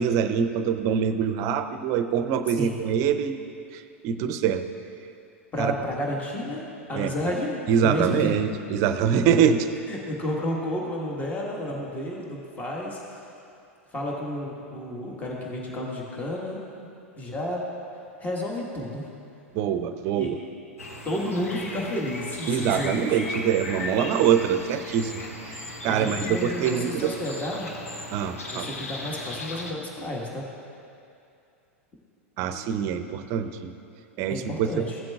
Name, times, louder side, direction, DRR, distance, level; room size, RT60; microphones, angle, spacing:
voice 1, 0.0-3.4 3.7-4.6 5.6-5.7 6.9-7.1 7.7-9.7 19.5-20.4 22.5-27.1 28.1-28.7 32.4-33.7 34.2-34.7, right 8 dB, 45° right, 10 dB, 0.5 m, -24 dB
voice 2, 2.5-2.8 5.5-8.4 9.9-13.2 13.9-16.6 17.2-17.7 18.2-19.1 20.2-20.4 21.0-23.1 25.8-27.7 28.5-30.5 34.3-35.0, left 1 dB, 20° left, -2 dB, 1.5 m, -31 dB
sound 1, 20.8-29.7, left 2 dB, 85° left, 1.0 m, -37 dB
15.0 x 7.5 x 2.4 m, 2.6 s
hypercardioid pair, 95°, 7 cm